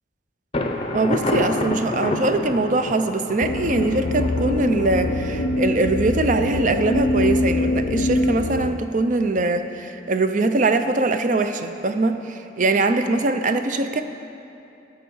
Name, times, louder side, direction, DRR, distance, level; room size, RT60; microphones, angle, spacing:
Thunder, 0.5-6.2, left 1 dB, 30° left, 0.6 m, -29 dB
voice 1, 0.9-14.0, right 2 dB, 40° right, 8 dB, 0.5 m, -22 dB
sound 1, 3.4-8.7, left 1 dB, 75° left, 0.5 m, -23 dB
14.0 x 6.1 x 5.5 m, 2.8 s
head